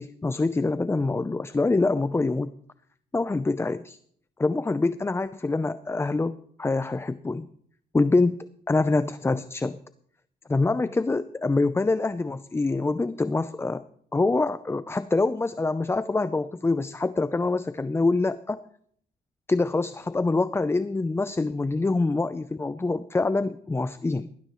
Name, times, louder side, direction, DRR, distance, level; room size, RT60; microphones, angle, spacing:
voice 1, 0.0-2.5 3.1-4.0 4.4-7.5 7.9-8.4 8.7-9.8 10.5-13.8 14.1-18.6 19.5-24.3, left 3 dB, 15° left, 14 dB, 0.5 m, -25 dB
19.0 x 15.5 x 3.1 m, 0.62 s
cardioid pair, 85°, 18 cm